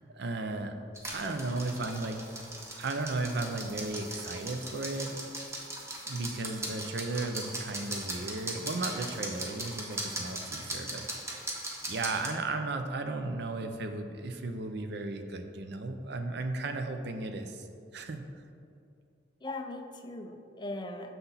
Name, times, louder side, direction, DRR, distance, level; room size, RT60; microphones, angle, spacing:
voice 1, 0.1-0.8 1.1-2.2 2.7-5.2 6.0-11.1 11.9-17.6 17.9-18.2, right 2 dB, 65° right, 7 dB, 0.6 m, -35 dB
sound 1, 0.9-12.3, right 1 dB, 15° right, 0.9 m, -39 dB
voice 2, 1.2-1.5 19.4-21.2, left 2 dB, 25° left, 5 dB, 0.5 m, -40 dB
6.8 x 5.9 x 4.1 m, 2.5 s
head